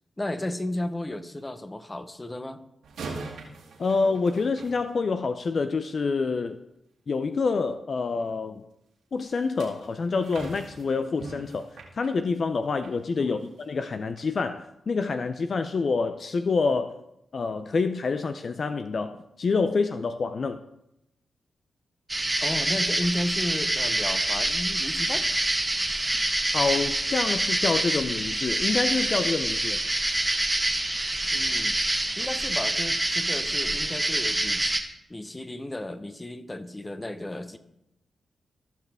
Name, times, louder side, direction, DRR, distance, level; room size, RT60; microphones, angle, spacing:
voice 1, 0.2-2.6 13.2-13.4 22.4-25.3 31.3-31.8 32.2-34.8 35.1-37.6, left 1 dB, 20° left, 10 dB, 0.9 m, -33 dB
sound 1, 2.8-5.4 9.2-13.0 13.4-13.6 14.2-14.3, right 3 dB, 90° right, 2.3 m, -42 dB
voice 2, 3.8-6.6 7.1-8.6 9.1-11.7 11.9-17.0 17.3-20.6 26.5-29.8, left 4 dB, 55° left, 9 dB, 0.5 m, -27 dB
sound 2, 22.1-34.8, right 1 dB, 15° right, 1.4 m, -26 dB
16.0 x 5.8 x 3.5 m, 0.82 s
cardioid pair, 55°, 0 cm